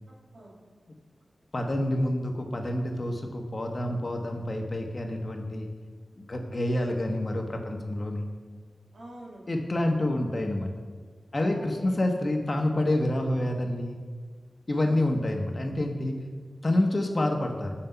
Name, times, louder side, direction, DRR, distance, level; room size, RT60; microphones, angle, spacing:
voice 1, 0.1-0.6 8.9-9.5 11.3-12.0 14.7-15.1, right 1 dB, 85° right, -4 dB, 1.9 m, -47 dB
voice 2, 1.5-5.7 6.2-8.3 9.5-10.7 11.3-14.0 14.7-16.2 16.6-17.7, left 1 dB, 45° left, 3 dB, 1.0 m, -28 dB
6.5 x 5.8 x 5.6 m, 1.5 s
cardioid pair, 45°, 0 cm